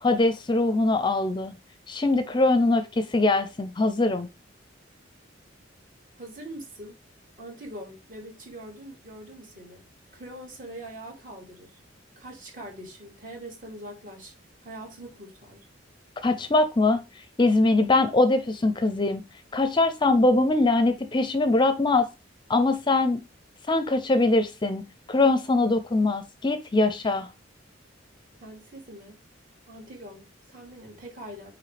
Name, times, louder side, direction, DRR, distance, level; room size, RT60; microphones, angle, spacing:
voice 1, 0.0-1.5 1.9-4.3 16.2-17.0 17.4-19.2 19.5-22.1 22.5-23.2 23.7-24.8 25.1-27.3, left 2 dB, 25° left, 0.6 m, -22 dB
voice 2, 6.2-7.0 7.4-9.8 10.1-11.8 12.2-14.3 14.6-15.7 28.4-29.2 29.7-31.5, right 1 dB, 45° right, 3.0 m, -43 dB
8.9 x 3.2 x 3.4 m
head